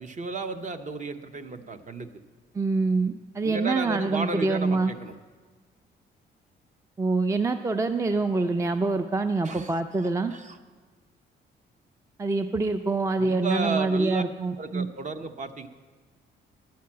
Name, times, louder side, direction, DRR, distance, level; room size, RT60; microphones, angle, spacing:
voice 1, 0.0-2.1 3.4-5.1 9.4-9.7 10.0-10.6 13.2-14.2 14.6-15.7, right 4 dB, 40° right, 9 dB, 0.7 m, -33 dB
voice 2, 2.5-4.9 7.0-10.3 12.2-14.9, right 3 dB, 15° right, 9 dB, 0.4 m, -25 dB
10.5 x 5.7 x 8.5 m, 1.4 s
cardioid pair, 90°, 20 cm